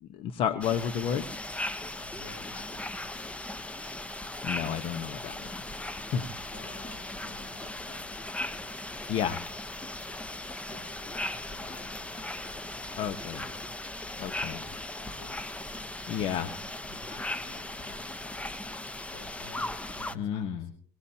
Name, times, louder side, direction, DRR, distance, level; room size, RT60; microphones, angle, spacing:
voice 1, 0.0-1.3 4.4-5.4 5.9-6.3 9.1-9.4 13.0-13.5 14.2-14.6 16.1-16.5 20.1-20.7, left 8 dB, 60° left, 10 dB, 1.2 m, -31 dB
sound 1, 0.6-20.2, left 2 dB, 10° left, 1.0 m, -38 dB
voice 2, 2.0-3.3 6.5-8.8 10.6-13.8 14.3-15.6 16.2-18.4 19.0-20.8, left 3 dB, 85° left, 1 dB, 5.7 m, -52 dB
24.0 x 17.5 x 2.9 m, 0.36 s
supercardioid pair, 95°, 10 cm